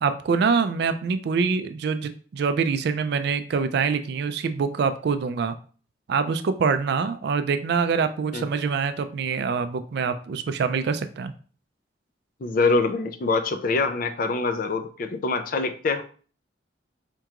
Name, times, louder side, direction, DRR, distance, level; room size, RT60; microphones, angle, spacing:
voice 1, 0.0-5.6 6.1-11.3, right 5 dB, 60° right, 10 dB, 0.3 m, -25 dB
voice 2, 12.4-16.0, left 3 dB, 50° left, 8 dB, 0.4 m, -24 dB
4.4 x 2.9 x 2.4 m, 0.40 s
head